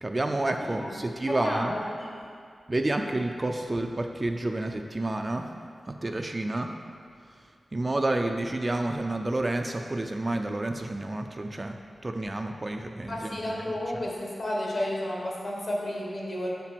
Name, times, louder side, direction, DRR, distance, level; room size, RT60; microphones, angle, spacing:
voice 1, 0.0-1.7 2.7-5.5 5.9-6.7 7.7-11.8 12.0-13.5, right 2 dB, 25° right, 4 dB, 0.4 m, -29 dB
voice 2, 0.6-0.9 1.3-2.1 13.1-16.5, left 1 dB, 50° left, -3 dB, 1.5 m, -32 dB
6.8 x 4.5 x 5.8 m, 2.2 s
wide cardioid pair, 110°, 0 cm